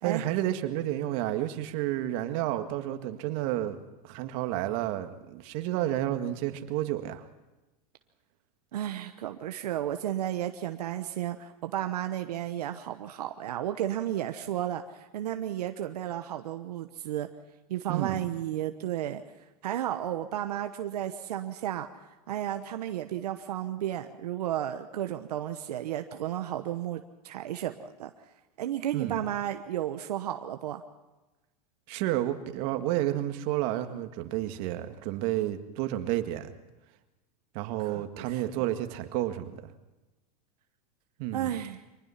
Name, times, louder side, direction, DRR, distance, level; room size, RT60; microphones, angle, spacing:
voice 1, 0.0-3.8 4.0-7.2 17.9-18.2 28.9-29.2 31.9-36.5 37.5-39.7 41.2-41.5, right 14 dB, 55° right, 7 dB, 1.9 m, -31 dB
voice 2, 8.7-17.3 17.7-19.2 19.6-21.9 22.3-28.1 28.6-30.8 37.8-38.4 41.3-41.8, right 12 dB, 85° right, 7 dB, 1.1 m, -33 dB
24.0 x 20.0 x 5.8 m, 1.1 s
supercardioid pair, 125°, 20 cm